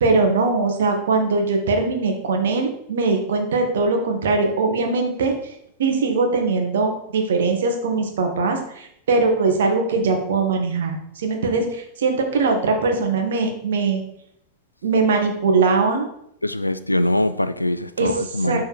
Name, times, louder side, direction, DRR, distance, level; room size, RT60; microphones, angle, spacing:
voice 1, 0.0-5.5 5.8-14.0 14.8-16.1 18.0-18.1 18.4-18.6, right 4 dB, 60° right, 1.3 m, -21 dB
voice 2, 16.4-18.6, left 1 dB, 85° left, 0.4 m, -22 dB
6.7 x 3.7 x 4.7 m
figure-of-eight pair, 90°, 0 cm